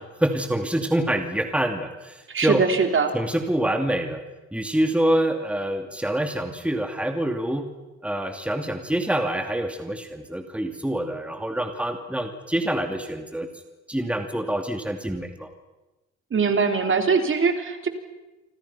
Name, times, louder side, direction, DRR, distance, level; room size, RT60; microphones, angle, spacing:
voice 1, 0.0-2.6 3.1-4.2 4.5-7.7 8.0-13.5 13.9-15.5, right 1 dB, 5° right, 5 dB, 2.6 m, -26 dB
voice 2, 2.3-3.1 16.3-17.9, right 5 dB, 40° right, 5 dB, 3.6 m, -22 dB
27.5 x 26.5 x 5.8 m, 1.1 s
cardioid pair, 90°, 30 cm